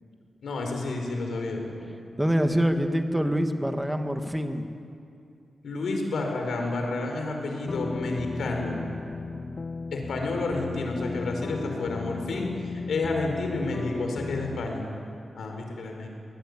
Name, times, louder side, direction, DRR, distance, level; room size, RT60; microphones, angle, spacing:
voice 1, 0.4-1.9 5.6-8.8 9.9-14.9 15.3-16.1, left 2 dB, 85° left, 2 dB, 4.9 m, -30 dB
voice 2, 2.2-4.7, equal, 5° right, 6 dB, 1.5 m, -25 dB
sound 1, 7.6-14.7, left 4 dB, 35° left, 0.5 m, -35 dB
23.5 x 19.5 x 9.8 m, 2.5 s
wide cardioid pair, 165°, 0 cm